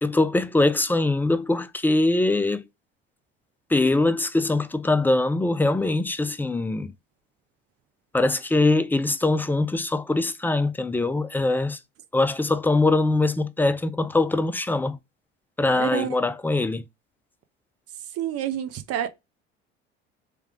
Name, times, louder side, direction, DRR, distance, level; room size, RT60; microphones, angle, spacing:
voice 1, 0.0-2.6 3.7-6.9 8.1-11.8 12.1-15.0 15.6-16.8, left 2 dB, 5° left, 0.5 m, -22 dB
voice 2, 15.7-16.1 18.1-19.1, right 11 dB, 50° right, 0.9 m, -28 dB
3.5 x 3.3 x 3.6 m
hypercardioid pair, 70°, 30 cm